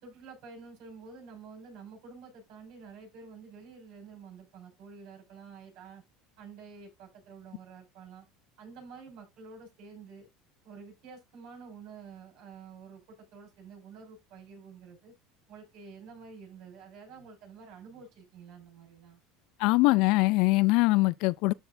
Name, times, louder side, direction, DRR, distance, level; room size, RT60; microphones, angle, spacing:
voice 1, 0.0-6.0 6.4-8.2 8.6-10.3 10.6-15.1 15.5-19.2, right 5 dB, 60° right, 5.8 m, -49 dB
voice 2, 19.6-21.5, left 22 dB, 65° left, 0.3 m, -23 dB
12.5 x 4.2 x 2.6 m
supercardioid pair, 140°, 0 cm